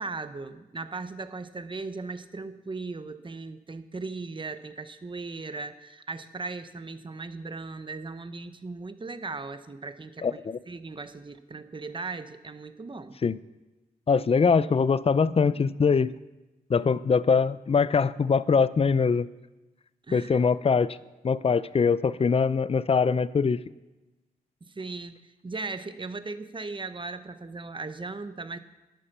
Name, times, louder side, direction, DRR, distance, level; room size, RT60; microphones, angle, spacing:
voice 1, 0.0-10.4 10.7-13.2 20.1-20.4 24.6-28.6, right 3 dB, 30° right, 11 dB, 0.9 m, -38 dB
voice 2, 10.2-10.6 13.2-13.4 14.1-16.1 16.7-19.3 20.1-21.0 21.2-23.6, left 5 dB, 35° left, 17 dB, 0.5 m, -23 dB
11.0 x 9.1 x 6.8 m, 1.1 s
cardioid pair, 70°, 16 cm